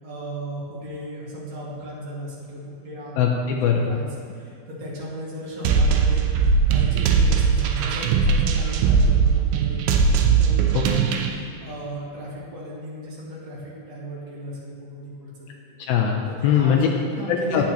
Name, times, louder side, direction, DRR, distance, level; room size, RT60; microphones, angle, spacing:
voice 1, 0.0-3.1 3.9-4.1 4.3-6.3 6.7-15.3 15.6-15.7 16.3-17.7, equal, 50° right, -6 dB, 2.3 m, -36 dB
voice 2, 3.2-4.0 10.7-10.9 15.9-16.9 17.3-17.7, left 7 dB, 85° left, 1 dB, 2.3 m, -21 dB
sound 1, 5.7-11.3, right 5 dB, 90° right, 2.9 m, -19 dB
11.5 x 8.7 x 2.9 m, 2.4 s
omnidirectional pair, 4.9 m